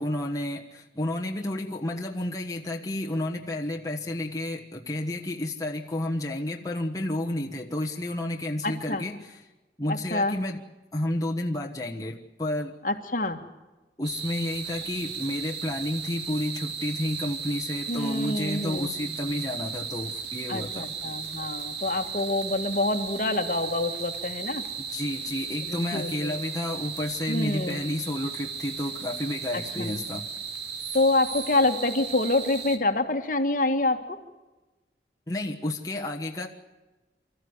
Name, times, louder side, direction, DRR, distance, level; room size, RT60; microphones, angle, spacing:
voice 1, 0.0-9.2 9.8-10.6 10.9-12.7 14.0-20.9 24.9-30.2 35.3-36.5, left 1 dB, 20° left, 0 dB, 1.3 m, -31 dB
voice 2, 8.6-9.1 9.9-10.4 12.8-13.4 17.9-18.9 20.5-24.6 25.6-26.4 27.3-27.8 29.5-29.9 30.9-34.2, left 2 dB, 50° left, 6 dB, 1.7 m, -27 dB
sound 1, 14.0-32.8, right 6 dB, 75° right, 2.0 m, -36 dB
26.0 x 14.0 x 9.6 m, 1.1 s
head